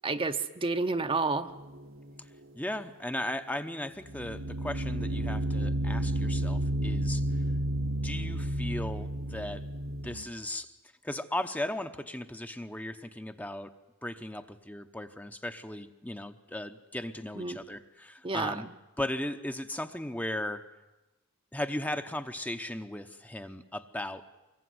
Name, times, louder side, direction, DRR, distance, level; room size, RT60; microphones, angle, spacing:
voice 1, 0.0-1.5 17.4-17.6 18.2-18.6, right 3 dB, 25° right, 8 dB, 0.8 m, -30 dB
sound 1, 1.7-2.0 4.1-10.2, right 1 dB, 70° right, 1.5 m, -31 dB
voice 2, 2.5-7.3 8.0-9.6 10.0-10.8 11.0-13.7 14.0-18.7 19.0-20.6 21.5-24.3, left 1 dB, 10° left, 8 dB, 0.8 m, -37 dB
24.5 x 21.5 x 9.6 m, 1.0 s
head